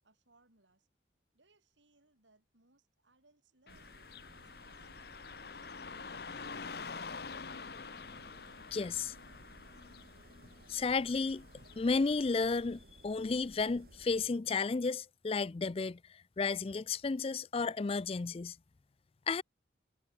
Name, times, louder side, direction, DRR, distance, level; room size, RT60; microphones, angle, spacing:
voice 1, 0.0-0.9 1.3-4.0 4.3-6.4, right 2 dB, 90° right, 7.7 m, -70 dB
Car passing by / Traffic noise roadway noise, 3.7-12.7, left 4 dB, 60° left, 1.0 m, -47 dB
sound 1, 3.7-14.3, right 1 dB, 55° right, 2.1 m, -59 dB
voice 2, 8.7-9.1 10.7-11.5 11.8-18.6 19.3-19.4, left 4 dB, 30° left, 0.4 m, -33 dB
head